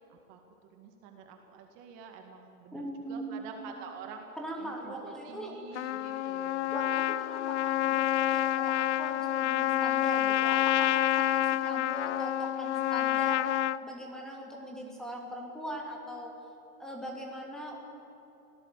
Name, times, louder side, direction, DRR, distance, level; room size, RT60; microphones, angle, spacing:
voice 1, 0.7-2.8 3.1-4.3 4.6-6.7, right 6 dB, 35° right, 3 dB, 2.1 m, -47 dB
voice 2, 2.7-3.7 4.3-5.6 6.7-13.5 13.8-16.3 16.8-17.8, right 1 dB, ahead, -1 dB, 2.8 m, -40 dB
Trumpet, 5.7-13.8, left 13 dB, 50° left, 0.6 m, -28 dB
25.5 x 17.5 x 8.3 m, 3.0 s
hypercardioid pair, 155°, 46 cm